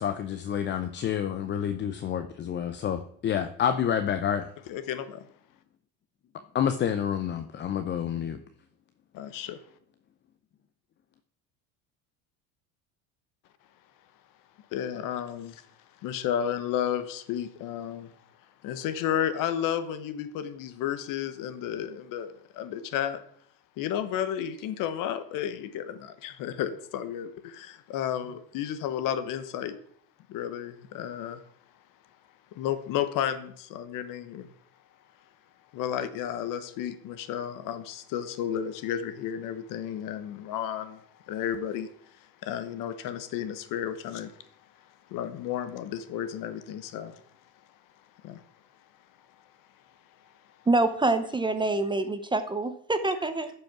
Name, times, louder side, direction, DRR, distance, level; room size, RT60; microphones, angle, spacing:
voice 1, 0.0-4.5 6.5-8.4, left 9 dB, 30° left, 9 dB, 0.5 m, -28 dB
voice 2, 4.7-5.3 9.1-9.6 14.7-15.7 16.0-18.1 18.6-23.2 23.8-29.8 30.3-31.4 32.5-34.5 35.7-41.9 42.4-44.3 45.1-47.2 48.2-48.4, left 10 dB, 55° left, 12 dB, 1.0 m, -32 dB
voice 3, 50.7-53.5, right 2 dB, 10° right, 9 dB, 0.7 m, -26 dB
10.5 x 5.5 x 5.9 m, 0.63 s
supercardioid pair, 115°, 38 cm